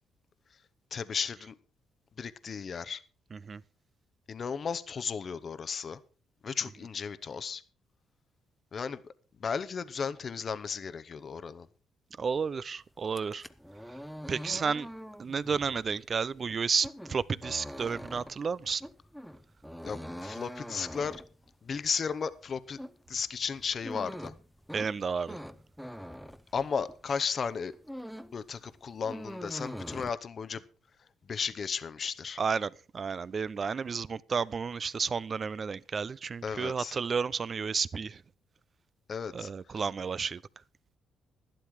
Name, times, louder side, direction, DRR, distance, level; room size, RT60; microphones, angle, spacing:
voice 1, 0.9-1.6 2.2-3.0 4.3-6.0 6.4-7.6 8.7-9.1 9.4-11.7 19.8-21.2 21.6-22.8 23.1-24.3 26.5-27.7 28.3-30.6 31.2-32.4 36.4-37.0 39.1-39.5, left 6 dB, 45° left, 0.8 m, -34 dB
voice 2, 3.3-3.6 12.2-13.4 13.9-14.0 14.3-14.9 15.2-18.9 24.7-25.4 32.4-38.2 39.3-40.4, right 5 dB, 40° right, 0.5 m, -32 dB
sound 1, 13.0-27.1 27.5-28.4 28.7-30.1, equal, ahead, 0.8 m, -44 dB
12.0 x 11.5 x 4.7 m
cardioid pair, 90°, 0 cm